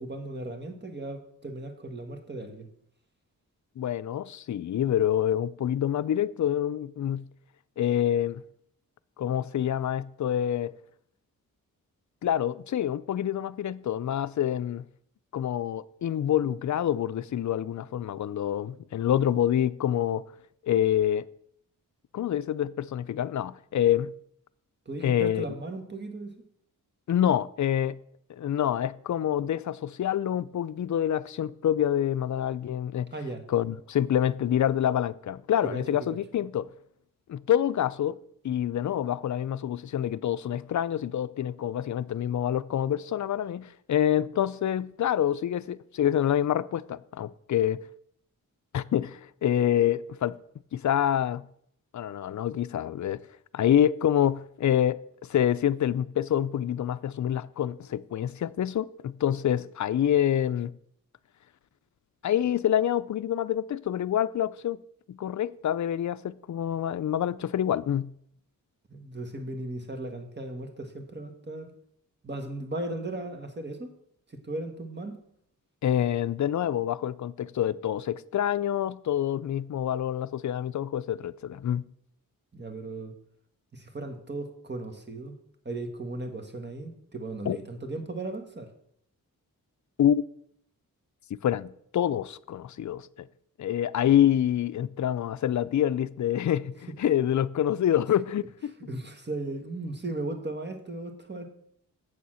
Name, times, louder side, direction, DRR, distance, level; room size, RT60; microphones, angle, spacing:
voice 1, 0.0-2.7 24.9-26.3 33.1-33.4 35.6-36.2 68.9-71.7 72.2-73.9 74.3-75.2 82.5-83.1 83.7-85.3 85.7-88.7 98.9-101.5, right 2 dB, 30° right, 1.7 m, -36 dB
voice 2, 3.8-7.2 7.8-8.4 9.2-10.7 12.2-14.8 15.3-20.2 20.6-21.2 22.1-24.1 25.0-25.4 27.1-28.0 28.3-33.1 33.5-36.7 37.3-38.2 38.4-47.8 48.7-50.4 50.7-51.4 51.9-53.2 53.5-55.0 55.3-60.7 62.2-64.8 65.1-68.1 75.8-81.9 87.5-87.6 90.0-90.2 91.4-93.3 93.6-98.7, left 10 dB, 55° left, 0.5 m, -27 dB
8.2 x 6.9 x 6.3 m
cardioid pair, 75°, 35 cm